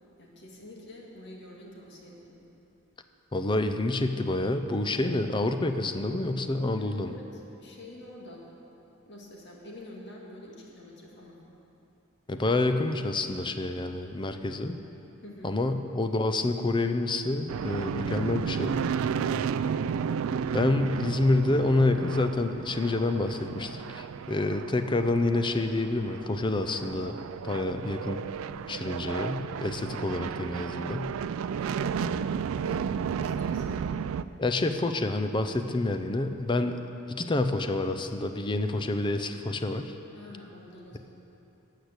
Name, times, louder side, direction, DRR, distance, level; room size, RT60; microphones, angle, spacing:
voice 1, 0.2-2.5 6.8-8.5 9.1-11.4 15.2-15.6 31.6-34.0 40.1-41.0, left 1 dB, 55° left, -2 dB, 2.0 m, -47 dB
voice 2, 3.3-7.2 12.3-14.8 15.4-18.8 20.5-28.2 28.7-31.1 34.4-36.8 37.1-39.9, left 2 dB, 25° left, 8 dB, 0.5 m, -28 dB
sound 1, 17.5-34.2, right 7 dB, 85° right, 0.3 m, -33 dB
12.5 x 6.7 x 8.1 m, 2.9 s
head